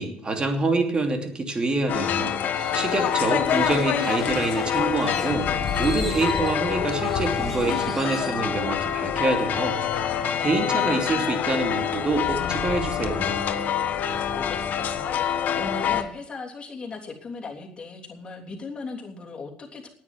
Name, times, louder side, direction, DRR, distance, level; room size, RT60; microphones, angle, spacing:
voice 1, 0.0-2.3 2.7-5.5 5.8-9.8 10.4-13.4, right 3 dB, 25° right, 4 dB, 2.9 m, -26 dB
sound 1, 1.9-16.0, left 8 dB, 55° left, 1.3 m, -26 dB
sound 2, 2.5-8.4, equal, 5° right, 2.6 m, -42 dB
voice 2, 2.6-3.7 14.3-19.9, left 3 dB, 30° left, 0 dB, 3.2 m, -38 dB
9.5 x 9.3 x 9.1 m, 0.69 s
supercardioid pair, 90°, 3 cm